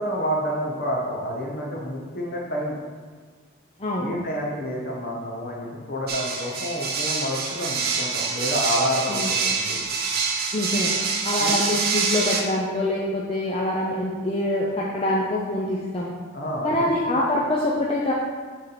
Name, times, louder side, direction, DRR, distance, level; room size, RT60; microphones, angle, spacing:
voice 1, 0.0-2.8 4.0-9.8 11.4-11.5 16.3-16.9, equal, 50° left, -2 dB, 1.3 m, -29 dB
voice 2, 3.8-4.1 9.1-9.3 10.5-10.9 11.2-16.1 16.6-18.1, left 1 dB, 30° left, -4 dB, 0.6 m, -25 dB
sound 1, 6.1-12.4, right 5 dB, 50° right, 0.8 m, -26 dB
6.7 x 3.8 x 5.8 m, 1.5 s
head